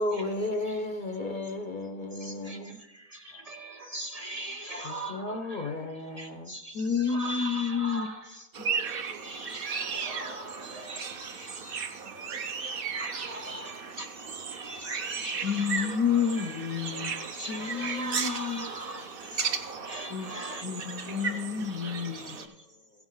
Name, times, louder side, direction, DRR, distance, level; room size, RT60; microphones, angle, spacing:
voice 1, 0.0-2.8 4.8-6.5, left 2 dB, 50° left, 0.6 m, -33 dB
voice 2, 2.2-2.6 3.1-5.7 6.2-8.3 8.9-11.8 12.6-14.1 14.5-15.7 16.4-16.5 16.8-20.7 21.0-21.2 21.9-22.4, right 1 dB, 65° right, 0.3 m, -41 dB
voice 3, 6.7-8.1 15.4-18.6 20.1-20.3 20.6-22.4, left 7 dB, 85° left, 1.2 m, -30 dB
sound 1, 8.5-22.5, right 5 dB, 50° right, 0.8 m, -36 dB
16.0 x 6.1 x 3.7 m
omnidirectional pair, 1.5 m